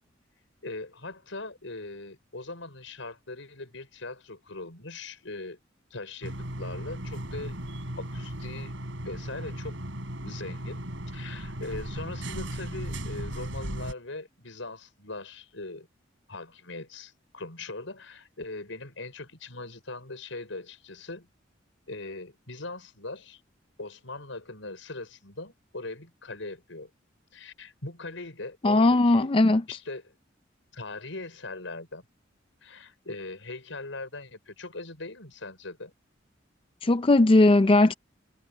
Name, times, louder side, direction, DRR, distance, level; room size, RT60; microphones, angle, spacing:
voice 1, 0.6-5.6 5.9-7.6 8.0-8.8 9.0-9.8 10.2-10.8 11.1-15.9 16.3-21.3 21.9-23.4 23.8-26.9 27.3-29.3 29.7-30.1 30.7-32.0 32.6-35.9, left 2 dB, 90° left, 5.6 m, -40 dB
sound 1, 6.2-13.9, right 1 dB, 75° right, 5.1 m, -36 dB
voice 2, 28.6-29.6 36.8-37.9, left 2 dB, 30° left, 0.5 m, -19 dB
head